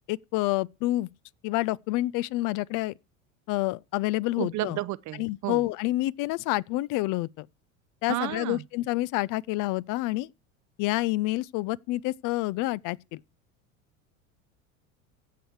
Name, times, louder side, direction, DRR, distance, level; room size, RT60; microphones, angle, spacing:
voice 1, 0.1-1.1 1.4-2.9 3.5-4.8 5.2-7.5 8.0-10.3 10.8-13.2, left 18 dB, 50° left, 0.6 m, -28 dB
voice 2, 4.4-5.6 8.1-8.6, right 16 dB, 45° right, 0.8 m, -32 dB
15.0 x 7.8 x 4.7 m
hypercardioid pair, 85°, 41 cm